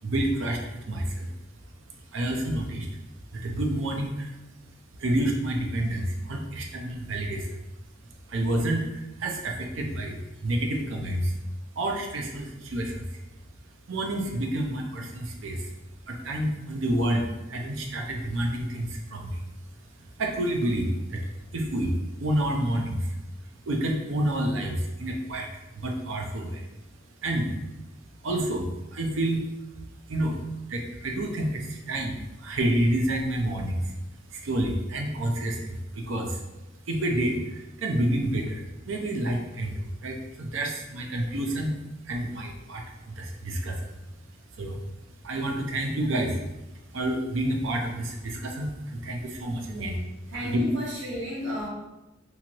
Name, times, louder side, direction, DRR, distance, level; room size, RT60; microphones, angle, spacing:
voice 1, 0.0-1.3 2.1-2.9 3.3-4.4 5.0-7.6 8.3-11.4 11.7-13.2 13.9-15.7 16.0-19.4 20.0-26.7 27.2-27.6 28.2-29.4 30.1-30.4 30.7-36.4 36.8-44.0 44.5-44.8 45.2-46.5 46.9-49.9 50.5-50.7, right 1 dB, 85° right, 2 dB, 0.5 m, -29 dB
voice 2, 50.3-51.7, equal, 65° right, -6 dB, 1.2 m, -34 dB
2.9 x 2.6 x 2.9 m, 0.97 s
head